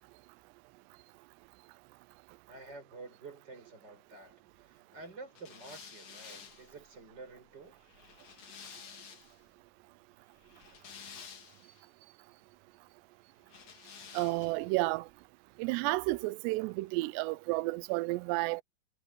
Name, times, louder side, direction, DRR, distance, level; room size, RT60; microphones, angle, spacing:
voice 1, 2.5-7.8, right 3 dB, 25° right, 5.1 m, -50 dB
sound 1, 5.3-9.4 10.4-11.8 13.5-14.7, left 7 dB, 45° left, 3.1 m, -51 dB
voice 2, 14.1-15.1 15.6-18.6, right 22 dB, 80° right, 2.6 m, -31 dB
omnidirectional pair, 5.3 m